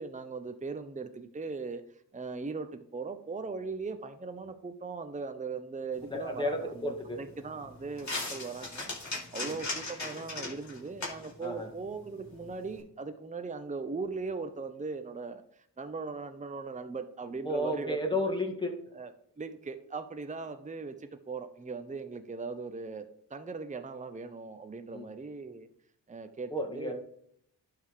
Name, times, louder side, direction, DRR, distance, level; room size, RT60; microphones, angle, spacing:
voice 1, 0.0-1.8 2.1-15.4 15.8-18.2 18.9-19.1 19.4-25.7 26.1-26.9, right 4 dB, 15° right, 9 dB, 0.8 m, -39 dB
sound 1, 5.9-12.8, left 2 dB, 40° left, 3.7 m, -41 dB
voice 2, 6.1-7.2 9.3-9.5 11.4-11.7 17.5-18.8 24.9-25.1 26.5-26.9, left 1 dB, 10° left, 1 dB, 2.0 m, -32 dB
11.0 x 3.8 x 4.9 m, 0.69 s
cardioid pair, 55°, 43 cm